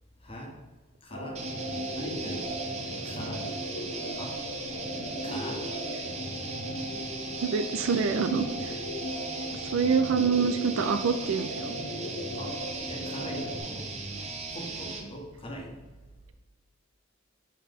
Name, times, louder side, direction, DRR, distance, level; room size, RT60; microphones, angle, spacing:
voice 1, 0.2-0.6 1.0-1.4 1.9-2.6 3.0-3.5 4.1-4.4 5.2-5.7 9.2-9.7 12.3-13.9 14.5-15.8, equal, 30° left, 1 dB, 1.3 m, -41 dB
sound 1, 1.1-13.6, equal, 90° left, 1.0 m, -37 dB
sound 2, 1.3-15.1, right 3 dB, 35° right, 0.9 m, -38 dB
voice 2, 7.4-8.8 9.6-11.7, right 6 dB, 80° right, 11 dB, 0.4 m, -26 dB
6.4 x 5.7 x 3.6 m, 1.2 s
head